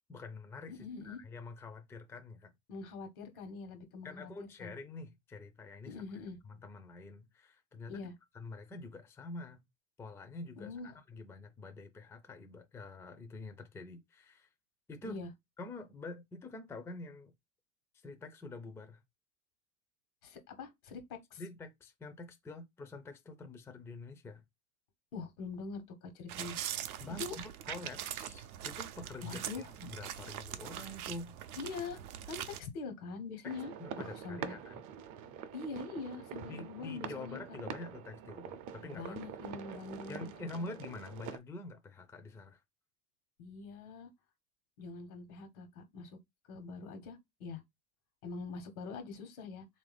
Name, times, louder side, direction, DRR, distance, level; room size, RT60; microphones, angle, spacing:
voice 1, 0.1-2.5 4.0-6.0 6.4-8.1 8.3-9.6 10.0-14.5 14.9-15.2 15.6-17.3 18.0-19.0 21.4-24.4 27.0-31.3 33.4-34.9 36.4-39.2 40.1-42.6, left 3 dB, 5° left, 0.4 m, -47 dB
voice 2, 0.7-1.2 2.7-4.7 5.8-6.4 7.9-8.1 10.6-10.9 15.0-15.3 20.2-21.4 25.1-26.6 27.2-27.3 29.2-29.7 31.6-34.6 35.5-37.6 38.8-40.7 43.4-44.1 44.8-46.2 46.5-47.6 48.2-49.7, left 4 dB, 80° left, 1.2 m, -44 dB
sound 1, 26.3-32.6, right 11 dB, 85° right, 0.6 m, -42 dB
sound 2, 33.4-41.4, right 8 dB, 45° right, 0.5 m, -45 dB
3.4 x 2.7 x 3.2 m
hypercardioid pair, 95°, 43 cm